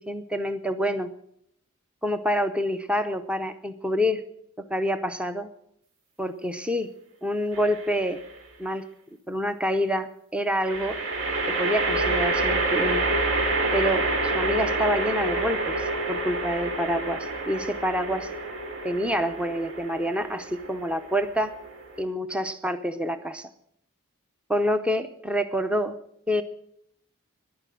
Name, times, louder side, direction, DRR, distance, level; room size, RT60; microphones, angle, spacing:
voice 1, 0.1-1.1 2.0-4.2 4.7-5.5 6.2-6.9 7.2-8.2 8.6-8.8 9.3-11.0 11.5-13.2 13.7-18.3 18.8-21.6 22.0-23.5 24.5-26.0 26.3-26.4, equal, 5° right, 9 dB, 0.7 m, -27 dB
sound 1, 7.5-8.1 10.6-22.0, right 2 dB, 65° right, 2.7 m, -28 dB
14.5 x 11.0 x 7.7 m, 0.71 s
head